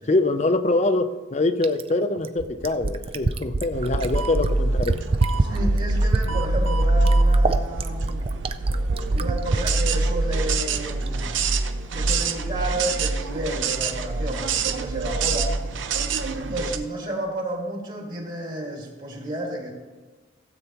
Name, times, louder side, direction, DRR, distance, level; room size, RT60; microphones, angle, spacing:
voice 1, 0.1-5.0, left 2 dB, 35° left, 0.5 m, -24 dB
Fill (with liquid), 1.6-9.7 11.1-11.2, right 3 dB, 30° right, 0.4 m, -25 dB
sound 1, 3.7-16.8, right 2 dB, 80° right, 0.7 m, -24 dB
voice 2, 5.4-8.2 9.1-11.4 11.9-15.6 16.3-19.7, right 1 dB, 45° right, 1.9 m, -31 dB
16.0 x 8.1 x 2.9 m
head